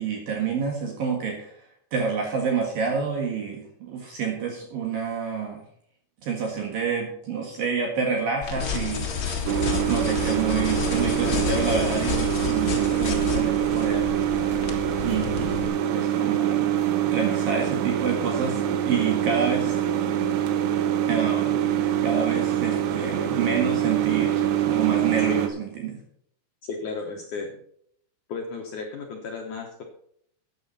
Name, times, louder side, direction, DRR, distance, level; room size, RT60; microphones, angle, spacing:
voice 1, 0.0-1.5 1.9-5.6 6.2-9.1 9.9-14.0 15.0-15.6 15.9-16.7 17.1-18.6 18.9-19.8 21.1-21.6 22.0-26.0, right 6 dB, 60° right, 1 dB, 3.2 m, -28 dB
sound 1, 8.4-15.7, left 6 dB, 45° left, 1.6 m, -30 dB
sound 2, 9.5-25.5, right 10 dB, 80° right, 3.0 m, -25 dB
voice 2, 26.6-27.5 28.3-29.8, left 4 dB, 70° left, 1 dB, 1.9 m, -34 dB
14.5 x 8.8 x 4.2 m, 0.66 s
omnidirectional pair, 5.0 m